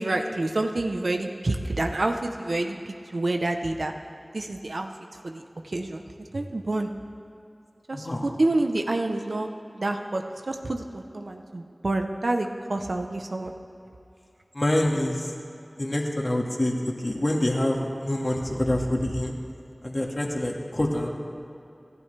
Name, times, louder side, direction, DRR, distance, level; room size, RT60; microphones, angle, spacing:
voice 1, 0.0-3.9 4.3-4.9 5.2-6.9 7.9-9.5 9.7-13.5, right 2 dB, 85° right, 4 dB, 0.8 m, -28 dB
voice 2, 7.9-8.3 14.5-15.3 15.8-16.7 17.0-19.3 19.8-21.1, left 1 dB, 45° left, -1 dB, 1.9 m, -26 dB
27.0 x 12.0 x 3.4 m, 2.7 s
wide cardioid pair, 55°, 0 cm